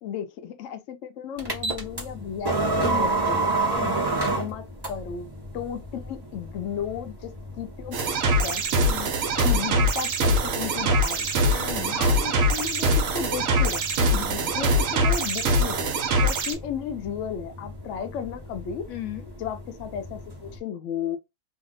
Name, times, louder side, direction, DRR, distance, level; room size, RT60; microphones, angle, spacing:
voice 1, 0.0-3.5 4.4-8.6 9.4-11.3 11.9-13.9 14.4-18.9 19.4-21.2, left 8 dB, 65° left, 0.9 m, -34 dB
sound 1, 1.4-20.6, right 2 dB, 25° right, 0.6 m, -32 dB
voice 2, 3.6-4.0 8.9-9.1 11.5-12.0 14.0-14.4 18.9-19.3, left 13 dB, 85° left, 1.1 m, -36 dB
sound 2, 7.9-16.5, right 1 dB, 65° right, 1.0 m, -23 dB
2.8 x 2.0 x 3.7 m
omnidirectional pair, 1.6 m